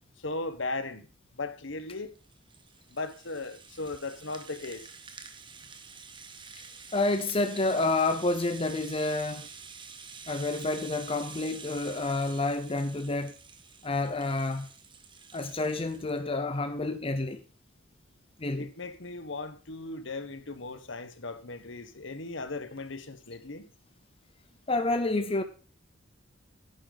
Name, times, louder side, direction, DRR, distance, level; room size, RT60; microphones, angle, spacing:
voice 1, 0.2-1.1 1.3-2.1 2.9-4.9 18.6-23.7, left 3 dB, 65° left, 1.3 m, -37 dB
Rattle (instrument), 2.0-16.2, right 5 dB, 25° right, 1.2 m, -48 dB
voice 2, 6.9-9.5 10.3-13.3 13.8-14.7 15.3-17.4 18.4-18.7 24.7-25.4, left 2 dB, 30° left, 0.7 m, -29 dB
10.0 x 9.9 x 4.1 m
head